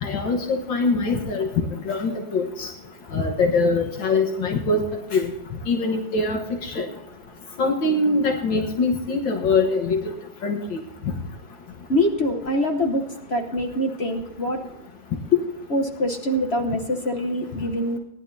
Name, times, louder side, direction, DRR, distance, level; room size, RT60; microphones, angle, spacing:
voice 1, 0.0-1.5 1.9-2.7 3.1-4.8 5.1-5.3 5.7-6.8 7.6-10.0 10.4-10.8, left 3 dB, 70° left, 1 dB, 2.0 m, -23 dB
voice 2, 11.9-13.0 13.3-14.6 15.3-15.4 15.7-18.0, left 1 dB, 45° left, 4 dB, 1.0 m, -24 dB
19.0 x 11.0 x 2.7 m, 0.90 s
omnidirectional pair, 2.2 m